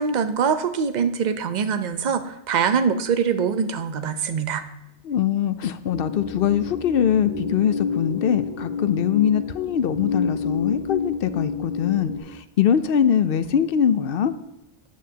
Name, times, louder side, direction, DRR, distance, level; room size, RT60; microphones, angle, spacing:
voice 1, 0.0-4.6, right 6 dB, 50° right, 9 dB, 0.7 m, -23 dB
voice 2, 5.0-14.3, left 9 dB, 65° left, 12 dB, 0.7 m, -22 dB
sound 1, 5.9-12.2, left 5 dB, 85° left, 1.6 m, -29 dB
14.5 x 9.2 x 2.8 m, 0.86 s
omnidirectional pair, 1.1 m